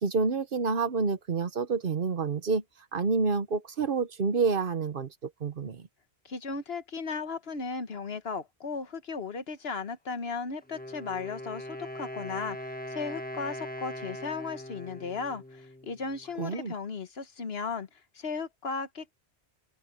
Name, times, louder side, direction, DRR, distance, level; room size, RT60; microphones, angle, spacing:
voice 1, 0.0-2.6 2.9-5.9 16.4-16.7, right 4 dB, 55° right, 1.1 m, -28 dB
voice 2, 6.2-17.9 18.1-19.2, left 4 dB, 65° left, 1.4 m, -36 dB
Wind instrument woodwind instrument, 10.6-16.4, equal, 10° left, 1.4 m, -41 dB
open air
omnidirectional pair, 1.1 m